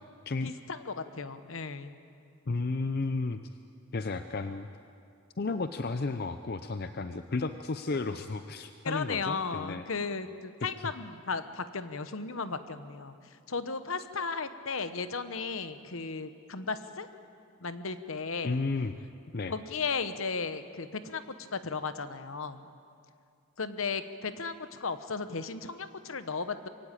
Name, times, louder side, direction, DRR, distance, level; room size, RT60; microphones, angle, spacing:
voice 1, 0.4-2.0 8.8-13.1 13.5-17.1 17.6-18.6 19.5-22.7 23.6-26.7, left 4 dB, 65° left, 11 dB, 1.0 m, -35 dB
voice 2, 2.5-3.4 3.9-4.7 5.4-9.8 10.8-10.9 18.4-18.9 19.3-19.5, left 3 dB, 45° left, 10 dB, 0.5 m, -33 dB
22.0 x 17.0 x 9.0 m, 2.4 s
head